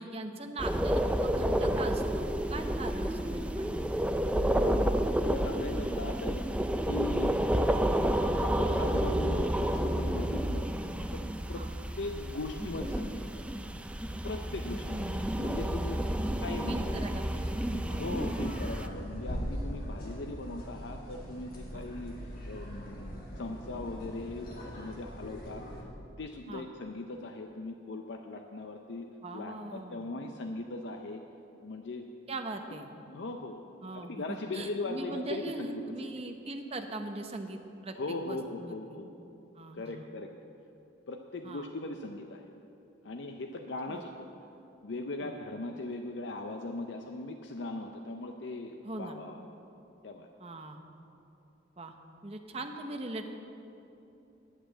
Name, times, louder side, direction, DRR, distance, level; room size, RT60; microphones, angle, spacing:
voice 1, 0.0-2.2 2.5-4.0 11.5-11.7 14.9-15.5 16.7-17.5 17.9-18.0 21.7-21.9 26.5-26.7 29.2-30.1 32.3-32.9 33.8-38.0 38.2-38.8 39.6-40.1 41.4-41.7 43.9-44.0 45.2-45.4 48.8-49.2 50.4-50.8 51.8-51.9 52.2-53.3, right 2 dB, 30° right, 5 dB, 0.9 m, -40 dB
sound 1, 0.6-18.9, right 1 dB, 5° right, 0.3 m, -30 dB
voice 2, 4.5-4.9 5.2-6.4 6.9-7.3 8.4-10.7 11.1-11.7 12.0-13.2 14.2-15.0 15.4-16.1 16.4-16.8 17.9-22.1 22.5-25.6 26.2-29.1 29.3-31.2 31.6-32.1 32.7-32.8 33.1-33.6 33.9-36.1 38.0-39.1 39.7-40.3 41.1-42.4 43.0-44.3 44.8-49.4 50.0-50.3, left 2 dB, 65° left, 4 dB, 0.6 m, -39 dB
sound 2, 14.8-25.8, equal, 50° left, 2.1 m, -41 dB
10.5 x 8.6 x 7.5 m, 2.8 s
head